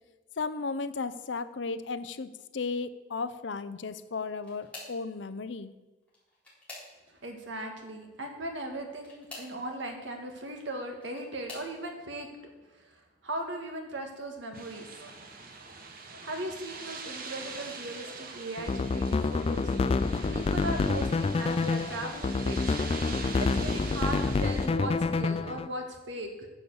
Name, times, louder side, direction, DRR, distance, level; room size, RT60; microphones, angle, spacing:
voice 1, 0.4-5.7 14.5-14.6, left 4 dB, 75° left, 13 dB, 0.6 m, -35 dB
sound 1, 4.0-5.1 6.0-7.3 8.9-9.6 10.7-11.7 12.5-12.8 13.3-13.4 14.7-14.8, left 2 dB, 5° left, 3.9 m, -48 dB
voice 2, 7.2-12.9 13.2-14.9 16.2-19.7 20.3-22.6 23.4-26.5, right 1 dB, 85° right, 3 dB, 1.8 m, -38 dB
sound 2, 14.5-24.7, right 4 dB, 50° right, 1.2 m, -43 dB
sound 3, 18.6-25.7, left 3 dB, 30° left, 0.3 m, -28 dB
10.0 x 7.0 x 7.1 m, 1.2 s
head